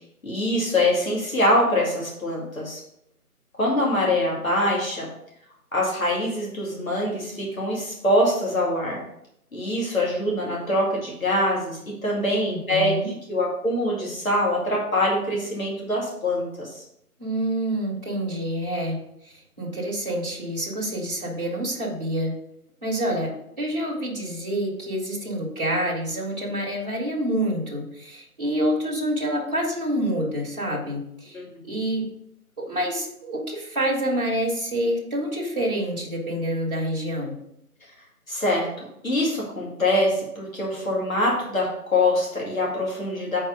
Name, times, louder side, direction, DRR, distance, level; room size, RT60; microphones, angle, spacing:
voice 1, 0.2-2.8 3.6-5.1 5.7-9.0 9.5-13.0 13.3-16.8 31.3-31.4 38.3-43.4, left 1 dB, 60° left, -3 dB, 2.4 m, -24 dB
voice 2, 12.4-13.1 17.2-19.0 19.2-22.3 22.8-32.1 32.6-37.3, right 1 dB, 30° right, -4 dB, 1.3 m, -27 dB
4.6 x 4.2 x 5.1 m, 0.76 s
figure-of-eight pair, 165°, 45 cm